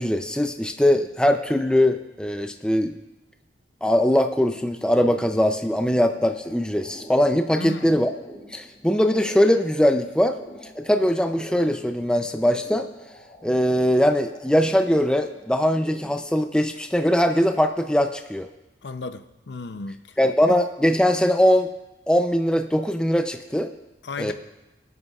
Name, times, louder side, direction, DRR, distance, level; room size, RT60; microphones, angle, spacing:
voice 1, 0.0-2.9 3.8-8.1 8.5-10.4 10.8-12.9 13.4-18.5 20.2-21.7 22.1-23.7 24.2-24.3, equal, 5° left, 6 dB, 0.5 m, -21 dB
sound 1, 5.4-16.2, left 1 dB, 20° left, 4.8 m, -45 dB
voice 2, 7.6-8.0 18.8-20.2 20.4-20.5 24.0-24.3, left 3 dB, 65° left, 10 dB, 0.6 m, -35 dB
23.5 x 9.5 x 2.4 m, 1.0 s
head